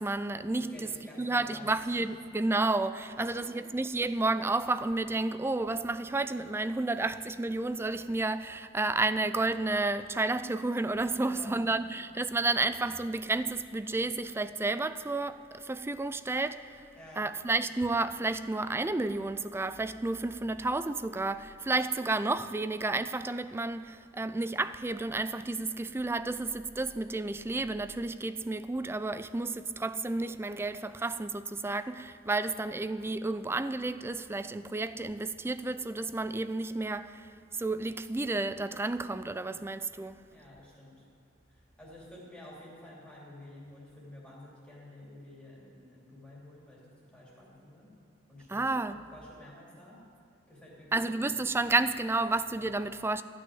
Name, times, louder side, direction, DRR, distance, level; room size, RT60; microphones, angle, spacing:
voice 1, 0.0-0.8 1.2-16.8 17.2-37.3 37.6-40.2 48.5-49.0 50.9-53.2, right 2 dB, 10° right, 0.3 m, -31 dB
voice 2, 0.5-2.0 11.1-11.7 17.0-17.2 40.3-41.0 41.5-46.8 47.1-47.9 48.3-50.0 50.5-51.1, left 1 dB, 5° left, 2.9 m, -50 dB
14.0 x 6.3 x 9.3 m
head